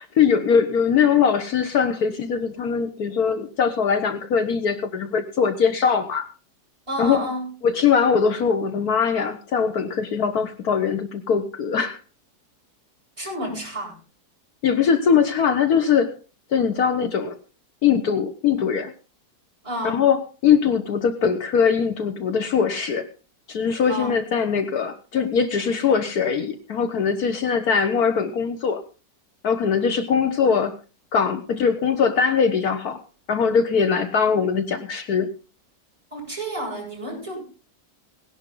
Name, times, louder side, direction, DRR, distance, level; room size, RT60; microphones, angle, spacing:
voice 1, 0.0-6.3 7.0-7.2 7.6-12.0 14.6-16.1 16.5-17.4 17.8-18.9 19.8-23.1 23.5-28.8 29.4-30.8 31.1-33.0 33.3-35.3, left 6 dB, 65° left, 9 dB, 1.5 m, -21 dB
voice 2, 6.9-7.5 13.2-14.0 19.6-20.1 23.9-24.1 36.1-37.4, right 1 dB, 20° right, -3 dB, 7.5 m, -30 dB
18.0 x 11.0 x 3.8 m, 0.34 s
omnidirectional pair, 1.8 m